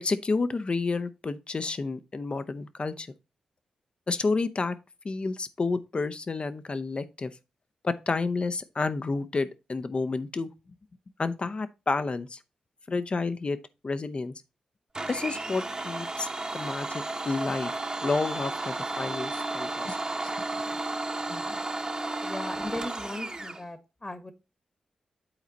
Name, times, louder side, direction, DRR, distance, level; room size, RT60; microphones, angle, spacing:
voice 1, 0.0-3.1 4.1-4.8 5.0-7.3 7.8-10.5 11.2-12.4 12.9-13.6 13.8-14.3 15.1-17.7 18.0-20.0 21.3-21.6, left 3 dB, 45° left, 0.7 m, -30 dB
Domestic sounds home sounds, 14.9-23.6, right 2 dB, 35° right, 1.2 m, -33 dB
voice 2, 22.2-24.3, left 2 dB, 25° left, 1.3 m, -37 dB
8.9 x 4.1 x 4.0 m
supercardioid pair, 40°, 2 cm